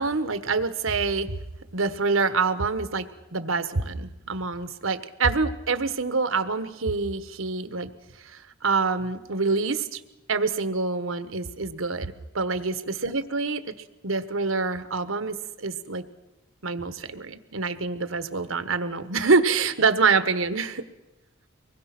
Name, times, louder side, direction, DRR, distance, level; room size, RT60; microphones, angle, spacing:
voice 1, 0.0-1.3 1.7-3.1 3.3-7.9 8.2-10.0 10.3-13.6 14.0-16.0 16.6-20.8, right 4 dB, 80° right, 11 dB, 1.3 m, -26 dB
24.5 x 21.0 x 6.0 m, 1.0 s
head